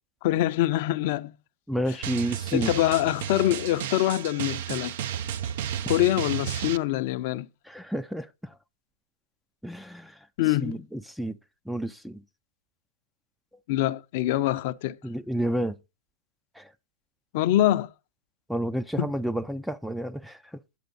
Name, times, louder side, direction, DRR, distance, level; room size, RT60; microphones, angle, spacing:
voice 1, 0.2-1.3 2.5-4.9 5.9-7.5 10.4-10.8 13.7-15.0 17.3-17.9 19.0-19.1, left 14 dB, 55° left, 0.5 m, -24 dB
voice 2, 1.7-2.7 7.7-8.6 9.6-10.2 10.6-11.4 11.7-12.2 15.0-15.8 16.6-16.7 18.5-20.6, right 1 dB, ahead, 0.4 m, -30 dB
Drum, 2.0-6.8, right 10 dB, 60° right, 0.6 m, -33 dB
9.2 x 8.0 x 4.0 m
hypercardioid pair, 115°, 0 cm